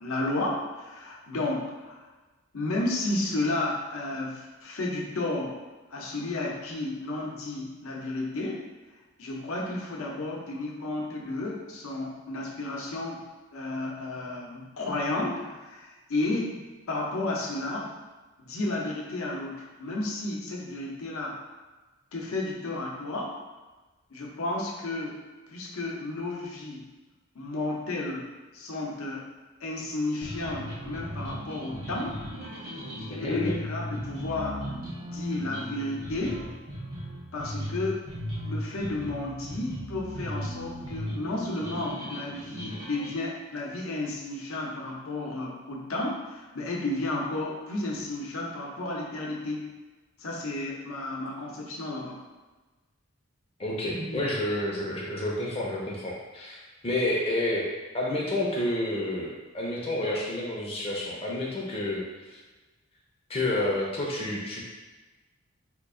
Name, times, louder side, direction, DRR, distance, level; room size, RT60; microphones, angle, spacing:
voice 1, 0.0-2.0 2.5-5.6 5.9-8.6 9.2-16.6 16.9-17.9 18.4-21.4 22.1-23.3 24.1-25.2 25.5-26.8 27.3-28.3 28.5-29.3 29.6-32.2 33.1-34.6 35.0-36.4 37.3-38.0 38.4-49.7 50.2-52.2 53.8-54.2, left 2 dB, 85° left, -2 dB, 0.7 m, -32 dB
sound 1, 30.2-43.2, equal, 80° right, 1.1 m, -37 dB
voice 2, 53.6-57.7 57.9-62.4 63.3-64.6, left 1 dB, 25° left, -4 dB, 0.5 m, -30 dB
2.9 x 2.4 x 3.6 m, 1.2 s
head